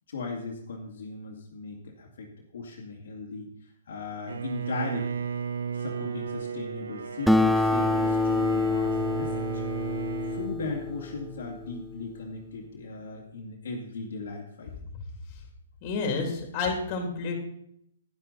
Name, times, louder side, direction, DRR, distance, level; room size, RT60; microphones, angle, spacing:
voice 1, 0.1-3.5 3.9-5.3 5.7-9.6 10.3-14.9, left 3 dB, 70° left, -1 dB, 2.2 m, -38 dB
Bowed string instrument, 4.3-10.5, right 6 dB, 85° right, 0.8 m, -34 dB
Acoustic guitar, 7.3-12.1, left 2 dB, ahead, 0.4 m, -27 dB
voice 2, 15.8-17.4, left 4 dB, 40° left, 3 dB, 3.0 m, -30 dB
10.5 x 10.5 x 4.1 m, 0.72 s
hypercardioid pair, 135°, 0 cm